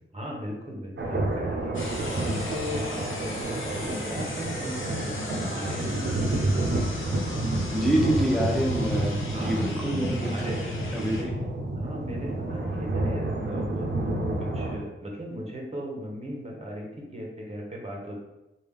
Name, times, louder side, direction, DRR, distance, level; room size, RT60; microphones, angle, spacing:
voice 1, 0.1-6.0 9.3-9.6 10.3-10.7 11.8-18.2, equal, 30° right, -1 dB, 0.8 m, -37 dB
sound 1, 1.0-14.8, right 2 dB, 65° right, 0.6 m, -29 dB
sound 2, 1.7-11.2, left 2 dB, 70° left, 0.7 m, -38 dB
voice 2, 7.7-11.3, equal, ahead, -2 dB, 0.7 m, -27 dB
3.3 x 2.3 x 3.5 m, 0.95 s
wide cardioid pair, 90°, 21 cm